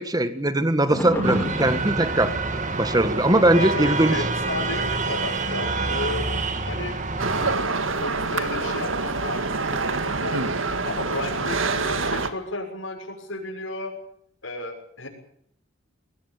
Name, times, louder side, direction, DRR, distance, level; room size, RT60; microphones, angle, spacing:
voice 1, 0.0-2.3 2.8-4.2, right 1 dB, 20° right, 11 dB, 1.7 m, -21 dB
sound 1, 0.9-6.4 6.9-8.7 9.4-9.5, equal, 10° left, 7.3 m, -34 dB
sound 2, 1.2-7.6, right 3 dB, 40° right, 2.3 m, -27 dB
voice 2, 3.6-6.3 6.6-7.0 8.0-10.5 10.8-13.9 14.4-15.1, left 2 dB, 80° left, 0 dB, 6.8 m, -33 dB
sound 3, 7.2-12.3, right 3 dB, 80° right, 2.1 m, -26 dB
23.0 x 17.5 x 8.8 m, 0.69 s
head